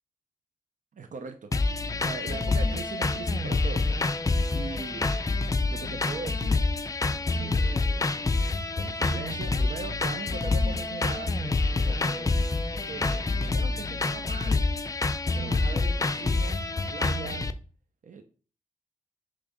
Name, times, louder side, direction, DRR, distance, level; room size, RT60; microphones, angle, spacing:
voice 1, 0.9-3.9 4.5-5.1 5.7-6.6 7.1-8.1 8.7-11.3 11.7-12.3 12.8-14.7 15.3-17.5 18.0-18.2, right 4 dB, 65° right, 6 dB, 0.7 m, -40 dB
sound 1, 1.5-17.5, left 3 dB, 25° left, 0.4 m, -27 dB
7.2 x 3.4 x 5.1 m, 0.37 s
wide cardioid pair, 135°, 14 cm